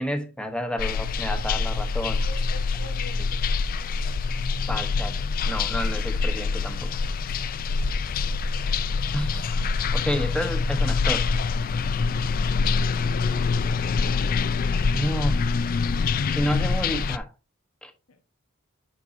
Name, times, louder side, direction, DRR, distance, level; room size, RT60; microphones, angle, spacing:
voice 1, 0.0-2.2 4.7-5.2 5.4-6.9 9.1-9.6 9.9-11.3 14.9-15.5 16.4-17.3 17.8-17.9, equal, 5° left, 0.9 m, -30 dB
sound 1, 0.8-17.2, left 4 dB, 40° left, 0.3 m, -25 dB
voice 2, 2.2-3.7 8.3-8.7 13.1-13.5 18.1-18.2, left 1 dB, 85° left, 0.9 m, -46 dB
6.9 x 6.1 x 2.6 m
head